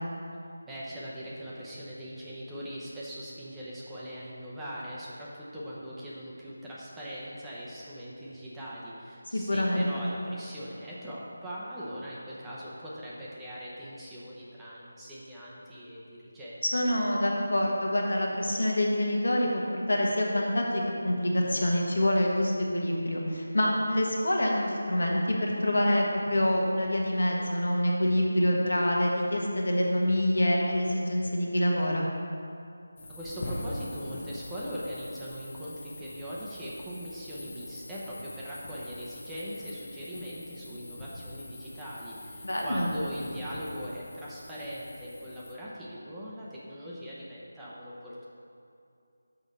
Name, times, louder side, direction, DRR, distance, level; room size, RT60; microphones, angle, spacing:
voice 1, 0.6-16.9 33.1-48.3, equal, 5° right, -8 dB, 0.8 m, -40 dB
voice 2, 9.3-9.9 16.6-32.1 42.4-42.9, left 1 dB, 75° left, -1 dB, 1.3 m, -26 dB
sound 1, 33.0-45.5, left 1 dB, 40° left, 1.1 m, -43 dB
6.3 x 4.9 x 5.3 m, 2.5 s
figure-of-eight pair, 165°, 0 cm